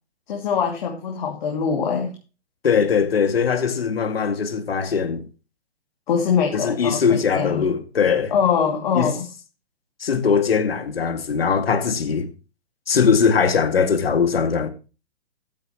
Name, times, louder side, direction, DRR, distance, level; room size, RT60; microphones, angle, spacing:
voice 1, 0.3-2.2 6.1-7.7 8.3-9.3, left 6 dB, 45° left, 2.6 m, -23 dB
voice 2, 2.6-5.3 6.5-8.3 8.9-9.1 10.0-12.3 12.9-14.7, left 6 dB, 60° left, 2.2 m, -20 dB
14.0 x 9.6 x 3.0 m
figure-of-eight pair, 125°, 33 cm